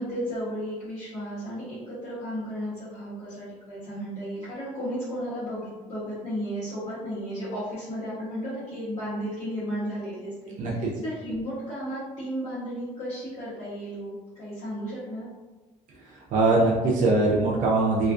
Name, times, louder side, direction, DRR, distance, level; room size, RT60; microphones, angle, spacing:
voice 1, 0.0-10.6 11.0-15.3, equal, 55° left, -12 dB, 0.9 m, -34 dB
voice 2, 10.6-10.9 16.0-18.1, right 2 dB, 75° right, -3 dB, 0.5 m, -22 dB
2.4 x 2.3 x 2.4 m, 1.2 s
cardioid pair, 130°, 13 cm